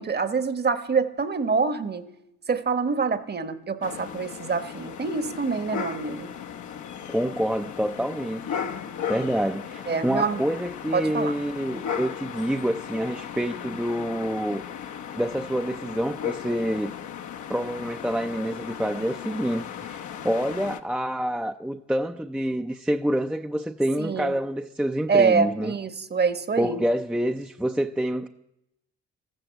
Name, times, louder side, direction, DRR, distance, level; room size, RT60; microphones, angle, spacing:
voice 1, 0.0-2.1 2.5-6.3 9.9-10.4 10.9-11.3 24.0-24.4 25.1-26.8, right 5 dB, 35° right, 1.1 m, -25 dB
sound 1, 3.8-20.8, left 8 dB, 70° left, 1.0 m, -36 dB
voice 2, 7.1-8.6 9.1-14.6 15.2-16.9 17.5-25.7 26.6-28.3, equal, 5° right, 0.5 m, -27 dB
13.5 x 13.0 x 7.9 m
cardioid pair, 90°, 30 cm